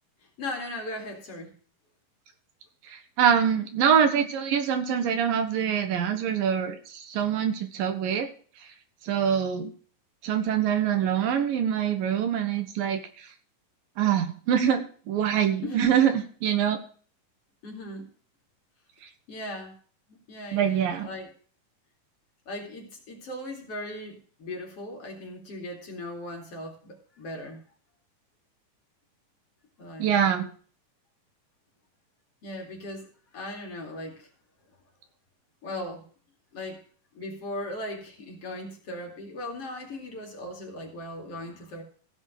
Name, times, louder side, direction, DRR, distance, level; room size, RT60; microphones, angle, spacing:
voice 1, 0.4-1.5 15.6-16.0 17.6-18.1 19.3-19.8 20.1-21.3 22.5-27.6 29.8-30.2 32.4-34.3 35.6-36.0 36.5-36.8 37.1-41.8, left 1 dB, 45° left, 1 dB, 3.4 m, -38 dB
voice 2, 2.8-8.3 9.0-9.7 10.2-13.3 14.0-16.8 20.5-21.1 30.0-30.5, right 8 dB, 75° right, 8 dB, 3.0 m, -24 dB
16.0 x 5.5 x 6.6 m, 0.43 s
omnidirectional pair, 4.2 m